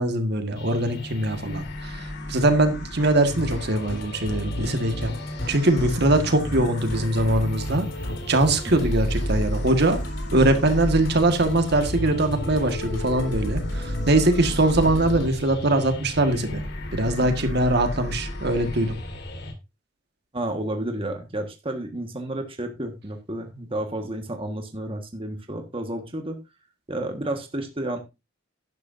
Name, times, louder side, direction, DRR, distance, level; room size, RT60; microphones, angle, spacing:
voice 1, 0.0-5.1 5.5-7.8 8.3-10.0 10.3-16.6 16.9-18.9, right 1 dB, 60° right, 6 dB, 1.6 m, -22 dB
sound 1, 0.5-19.5, left 1 dB, 60° left, 2.2 m, -35 dB
Musical instrument, 3.3-15.2, left 1 dB, 85° left, 3.8 m, -32 dB
voice 2, 20.3-26.4 26.9-28.0, right 1 dB, 30° right, 5 dB, 1.5 m, -31 dB
12.0 x 11.0 x 2.6 m, 0.24 s
head